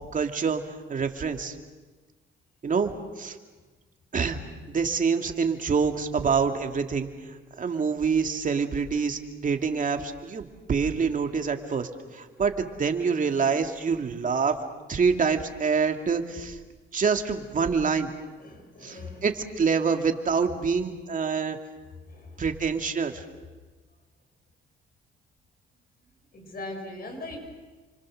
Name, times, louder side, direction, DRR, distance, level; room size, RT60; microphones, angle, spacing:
voice 1, 0.1-0.6 0.9-1.5 2.6-3.4 4.1-4.4 4.7-7.1 7.6-14.6 14.9-16.6 16.9-18.1 18.8-21.6 22.4-23.2, right 5 dB, 40° right, 5 dB, 2.6 m, -26 dB
voice 2, 18.4-19.3 22.1-22.5 26.3-27.4, left 2 dB, 50° left, 4 dB, 7.1 m, -40 dB
30.0 x 25.5 x 6.7 m, 1.3 s
cardioid pair, 90°, 20 cm